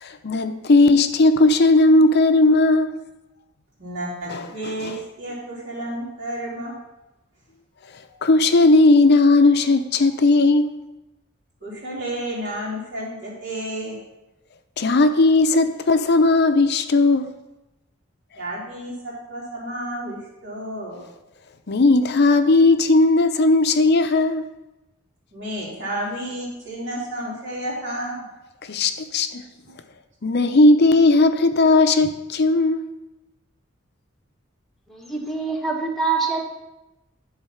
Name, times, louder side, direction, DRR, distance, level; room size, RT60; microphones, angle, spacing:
voice 1, 0.0-2.9 4.3-4.4 4.8-4.9 8.2-10.8 14.8-17.3 21.7-24.4 28.7-29.3 30.2-32.9, left 2 dB, 55° left, 0.6 m, -16 dB
voice 2, 3.8-6.7 11.6-14.0 18.3-21.0 25.3-28.2, right 1 dB, 60° right, 3.3 m, -31 dB
voice 3, 34.9-36.4, right 4 dB, ahead, 1.2 m, -25 dB
10.5 x 4.1 x 5.6 m
head